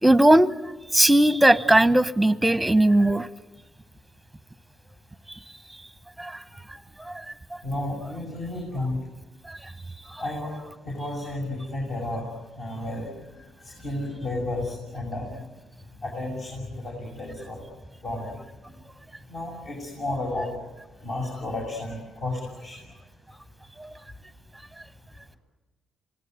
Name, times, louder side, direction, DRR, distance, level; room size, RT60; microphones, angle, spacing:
voice 1, 0.0-3.3 6.2-6.4 7.0-7.2 9.5-9.6 10.1-10.2 23.8-23.9, right 1 dB, 5° right, 14 dB, 1.0 m, -19 dB
voice 2, 7.6-9.0 10.2-10.5 10.8-12.3 12.6-13.1 13.4-15.5 16.0-17.6 18.0-18.3 19.3-20.5 21.0-22.8, left 2 dB, 50° left, -1 dB, 7.3 m, -32 dB
27.0 x 19.5 x 9.6 m, 1.2 s
cardioid pair, 90°, 0 cm